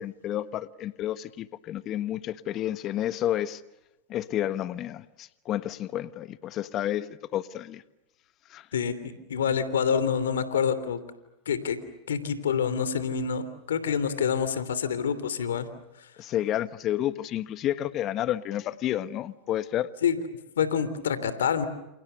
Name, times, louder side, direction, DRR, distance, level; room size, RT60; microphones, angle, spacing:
voice 1, 0.0-3.6 4.1-7.8 8.5-8.7 16.2-19.9, left 12 dB, 40° left, 13 dB, 1.4 m, -30 dB
voice 2, 8.7-11.0 11.4-11.8 12.1-15.7 16.0-16.1 20.0-20.2 20.6-21.7, left 7 dB, 85° left, 13 dB, 3.1 m, -27 dB
29.0 x 28.5 x 6.9 m, 0.92 s
hypercardioid pair, 105°, 0 cm